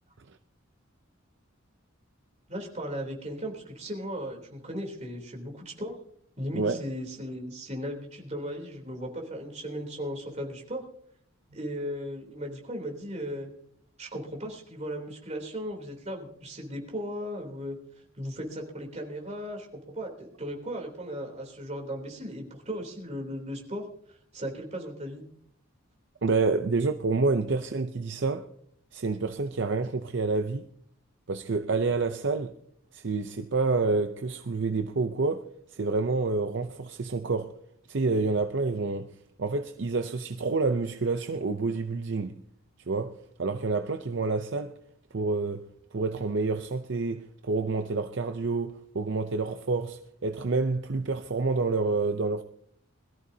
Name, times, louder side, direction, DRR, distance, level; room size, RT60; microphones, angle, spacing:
voice 1, 2.5-5.9 6.4-10.8 11.5-13.5 14.0-17.7 18.2-19.7 19.9-23.9 24.3-25.2, equal, 35° right, 3.3 m, -36 dB
voice 2, 6.5-6.8 26.2-28.5 28.9-30.6 31.3-32.6 32.9-37.6 37.9-42.4 42.9-44.7 45.1-52.4, right 3 dB, 55° right, 0.6 m, -28 dB
22.0 x 14.0 x 2.8 m
head